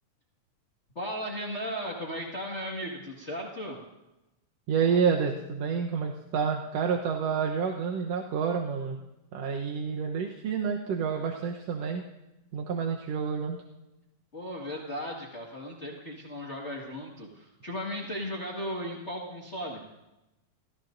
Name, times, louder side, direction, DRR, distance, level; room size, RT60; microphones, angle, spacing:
voice 1, 0.9-3.8 14.3-19.8, equal, 30° left, -2 dB, 1.6 m, -36 dB
voice 2, 4.7-9.0 9.3-12.0 12.5-13.6, right 6 dB, 65° right, 1 dB, 1.9 m, -29 dB
29.5 x 15.5 x 2.6 m, 0.95 s
omnidirectional pair, 3.5 m